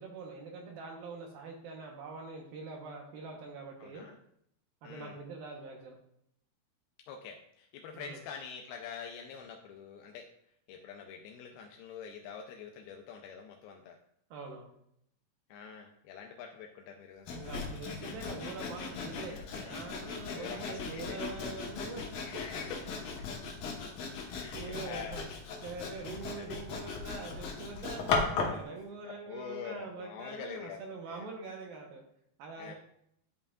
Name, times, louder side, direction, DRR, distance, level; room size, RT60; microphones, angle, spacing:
voice 1, 0.0-4.1 4.8-6.0 7.9-8.2 14.3-14.7 17.3-22.0 24.5-25.3 25.6-32.0 32.4-32.7, right 3 dB, 75° right, 1 dB, 2.5 m, -44 dB
voice 2, 3.8-4.2 4.8-5.2 7.1-10.3 10.7-14.0 15.5-17.3 19.3-19.8 20.2-21.2 22.2-22.8 23.1-23.3 24.2-25.2 26.4-26.6 29.0-30.8 31.1-31.3 32.6-32.7, left 7 dB, 85° left, 2 dB, 2.4 m, -45 dB
Sawing, 17.3-28.6, left 4 dB, 65° left, 2.4 m, -37 dB
11.0 x 5.5 x 2.4 m, 0.72 s
omnidirectional pair, 4.7 m